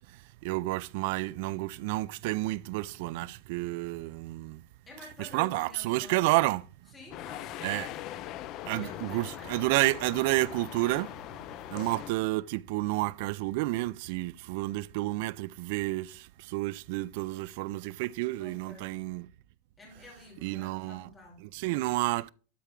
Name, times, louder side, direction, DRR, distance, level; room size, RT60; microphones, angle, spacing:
voice 1, 0.4-4.6 5.2-6.6 7.6-7.9 8.7-11.1 11.7-19.3 20.4-21.1 21.5-22.3, right 19 dB, 50° right, 0.4 m, -30 dB
voice 2, 4.9-6.5 6.9-7.9 8.8-10.0 11.6-11.9 18.4-19.0 19.8-21.4, left 2 dB, 10° left, 3.1 m, -50 dB
sound 1, 7.1-12.1, left 13 dB, 30° left, 0.4 m, -41 dB
12.5 x 4.5 x 3.7 m
supercardioid pair, 175°, 0 cm